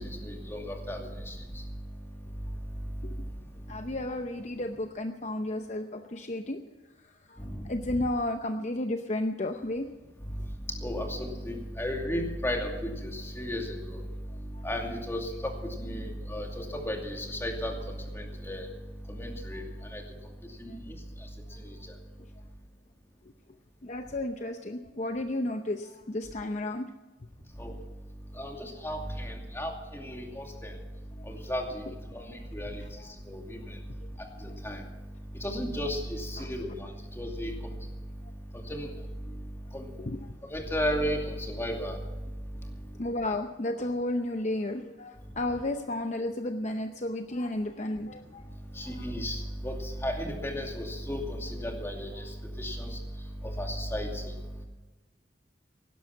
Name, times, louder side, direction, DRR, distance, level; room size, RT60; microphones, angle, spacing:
voice 1, 0.0-1.6 7.4-8.0 10.7-14.0 14.6-18.7 19.1-20.0 20.6-21.0 21.6-21.8 27.6-27.7 28.4-30.7 31.2-31.8 32.1-32.8 33.3-33.8 34.4-34.8 35.3-37.5 38.5-38.9 39.7-39.9 40.5-42.0 48.7-53.0 53.4-54.3, equal, 15° left, 2 dB, 2.5 m, -34 dB
voice 2, 3.7-6.6 7.3-7.4 7.6-9.9 14.5-14.6 23.8-26.9 36.4-36.5 40.0-40.2 43.0-48.4 48.8-49.1 52.2-52.3, left 1 dB, 40° left, 6 dB, 0.7 m, -33 dB
17.0 x 12.0 x 5.9 m, 1.2 s
head